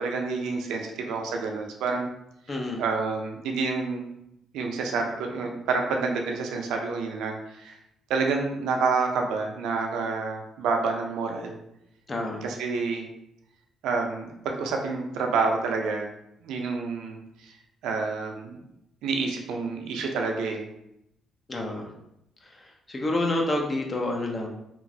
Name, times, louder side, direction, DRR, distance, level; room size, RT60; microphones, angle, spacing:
voice 1, 0.0-2.1 2.8-4.1 4.5-7.8 8.1-11.6 12.4-13.1 13.8-16.1 16.4-17.5 17.8-18.6 19.0-20.7, right 4 dB, 90° right, 2 dB, 0.4 m, -28 dB
voice 2, 2.5-2.8 12.1-12.4 21.5-21.9 22.4-24.5, left 2 dB, 30° left, 0 dB, 0.6 m, -29 dB
2.9 x 2.4 x 2.6 m, 0.80 s
cardioid pair, 90°, 0 cm